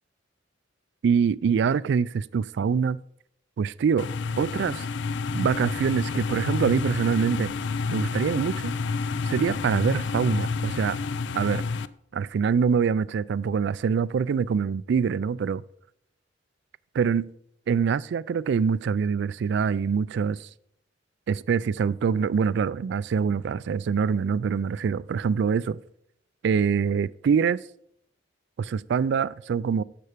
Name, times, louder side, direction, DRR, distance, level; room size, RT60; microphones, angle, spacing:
voice 1, 1.0-3.0 3.6-4.1 4.4-4.8 5.3-7.5 7.9-8.7 9.2-11.0 11.3-11.6 12.1-15.6 16.9-17.3 17.7-20.5 21.3-25.8 26.4-27.6 28.6-29.8, right 6 dB, 60° right, 0.3 m, -24 dB
sound 1, 4.0-11.9, left 4 dB, 65° left, 0.4 m, -30 dB
11.0 x 6.8 x 5.0 m
head